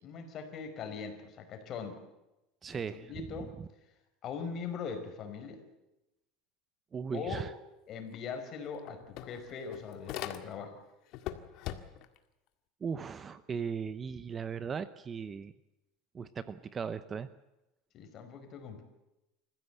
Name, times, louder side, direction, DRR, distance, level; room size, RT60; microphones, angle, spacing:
voice 1, 0.0-2.0 2.7-3.5 4.2-5.6 7.1-7.4 7.9-10.8 17.9-18.8, left 6 dB, 40° left, 7 dB, 4.8 m, -41 dB
voice 2, 2.6-3.3 3.6-3.7 6.9-7.5 12.8-15.5 16.1-17.3, right 6 dB, 25° right, 14 dB, 0.8 m, -38 dB
sound 1, 8.1-8.2 8.5-10.8 11.1-12.2, left 12 dB, 55° left, 1.8 m, -42 dB
27.5 x 15.5 x 8.1 m, 0.95 s
supercardioid pair, 145°, 0 cm